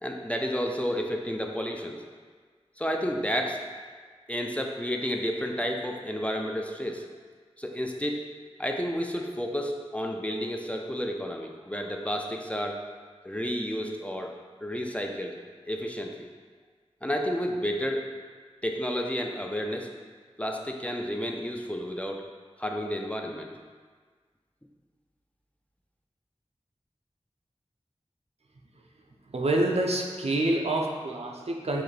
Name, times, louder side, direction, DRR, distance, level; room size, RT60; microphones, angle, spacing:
voice 1, 0.0-2.0 2.8-3.6 4.3-7.0 7.6-8.2 8.6-12.8 13.2-14.3 14.6-15.3 15.7-16.1 17.0-18.0 18.6-19.9 20.4-22.2 22.6-23.5, equal, 10° left, 2 dB, 0.4 m, -31 dB
voice 2, 29.3-31.8, right 1 dB, 70° right, 0 dB, 0.5 m, -27 dB
5.7 x 2.6 x 3.3 m, 1.5 s
wide cardioid pair, 65°, 11 cm